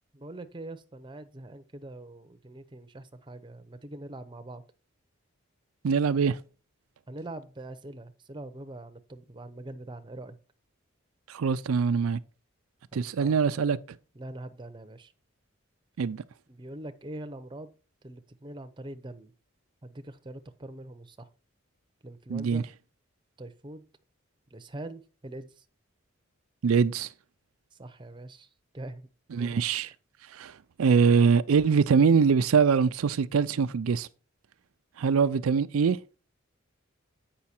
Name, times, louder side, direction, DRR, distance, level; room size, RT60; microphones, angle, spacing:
voice 1, 0.1-4.6 7.1-10.4 12.9-13.5 14.1-15.1 16.5-17.7 18.0-19.3 19.8-21.3 22.0-22.7 23.4-23.8 24.5-25.6 27.7-28.5 28.7-29.6, right 1 dB, 25° right, 0.7 m, -43 dB
voice 2, 5.8-6.4 11.3-12.2 12.9-13.8 16.0-16.2 22.3-22.6 26.6-27.1 29.3-29.9 30.3-34.1 35.0-36.0, right 5 dB, 90° right, 0.4 m, -23 dB
8.4 x 5.6 x 4.3 m
head